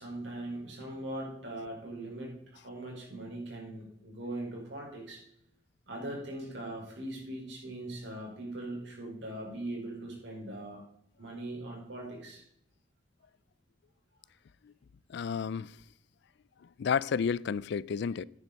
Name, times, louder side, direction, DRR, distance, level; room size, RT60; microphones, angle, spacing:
voice 1, 0.0-5.2 5.9-10.8 11.2-12.4, right 1 dB, 70° right, 4.8 m, -40 dB
voice 2, 15.1-15.7 16.8-18.2, left 6 dB, 65° left, 0.4 m, -31 dB
10.5 x 9.9 x 4.1 m
head